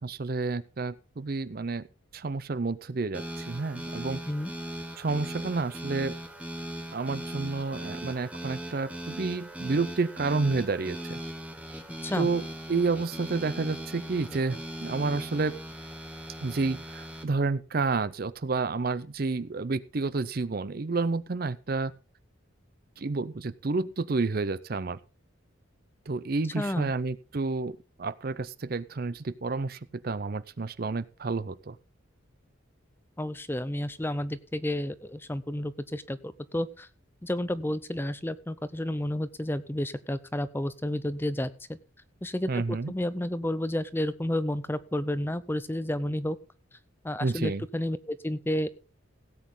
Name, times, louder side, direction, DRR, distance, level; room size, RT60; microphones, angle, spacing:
voice 1, 0.0-1.8 2.1-4.2 5.0-6.1 6.9-11.2 12.1-15.6 16.4-21.9 23.0-25.0 26.1-29.8 30.0-31.8 42.5-42.9 47.2-47.6, right 3 dB, 45° right, 16 dB, 0.5 m, -30 dB
sound 1, 3.1-17.2, equal, 5° right, 1.1 m, -39 dB
voice 2, 26.6-26.9 33.2-36.9 37.2-41.8 42.2-42.6 42.9-46.4 47.0-48.7, left 1 dB, 10° left, 14 dB, 0.6 m, -31 dB
17.0 x 8.3 x 3.8 m, 0.34 s
head